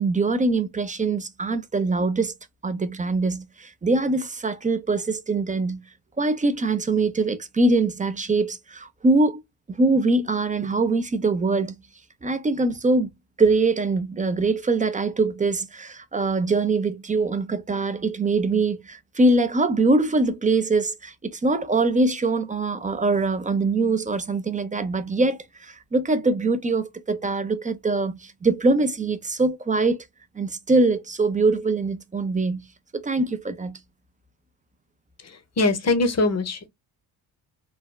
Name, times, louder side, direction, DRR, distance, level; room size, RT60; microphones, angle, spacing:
voice 1, 0.0-2.3 2.6-5.8 6.2-9.4 9.7-11.8 12.2-13.1 13.4-30.0 30.4-32.6 32.9-33.8, right 3 dB, 15° right, 0.5 m, -23 dB
voice 2, 35.2-36.7, left 2 dB, 35° left, 0.8 m, -23 dB
3.3 x 2.2 x 2.2 m
supercardioid pair, 60°, 49 cm